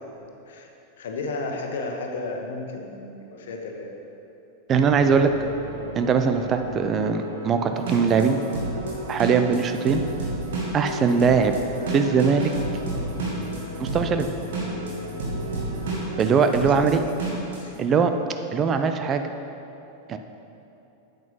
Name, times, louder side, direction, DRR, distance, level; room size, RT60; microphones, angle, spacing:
voice 1, 1.0-3.9 16.6-17.0 17.6-17.7, left 3 dB, 60° left, 2 dB, 1.3 m, -33 dB
voice 2, 4.7-5.3 5.9-8.4 9.1-10.0 10.7-11.5 11.9-12.5 13.8-14.3 16.2-17.0 17.8-18.1 18.5-19.2 20.1-20.2, right 6 dB, 25° right, 7 dB, 0.6 m, -21 dB
sound 1, 4.7-16.8, equal, 80° right, 1.3 m, -36 dB
sound 2, 7.8-17.6, right 3 dB, 60° right, 2.5 m, -30 dB
9.2 x 8.0 x 5.7 m, 2.9 s
figure-of-eight pair, 90°, 0 cm